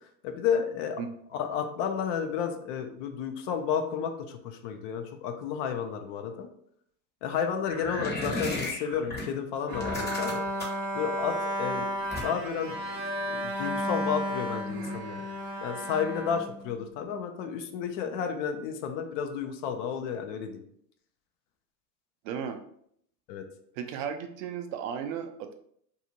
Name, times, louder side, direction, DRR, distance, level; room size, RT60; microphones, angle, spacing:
voice 1, 0.2-1.0 1.3-6.5 7.2-10.4 10.9-11.9 12.2-12.7 13.3-15.2 15.6-20.6 23.3-23.4, left 7 dB, 50° left, 6 dB, 0.6 m, -32 dB
sound 1, 7.7-9.2 9.7-10.8 12.1-12.5, left 2 dB, 20° left, 0.9 m, -34 dB
Bowed string instrument, 9.7-17.1, equal, 70° right, 0.9 m, -33 dB
voice 2, 22.2-22.6 23.8-25.5, right 7 dB, 50° right, 6 dB, 0.5 m, -35 dB
2.7 x 2.4 x 2.8 m, 0.66 s
hypercardioid pair, 90°, 50 cm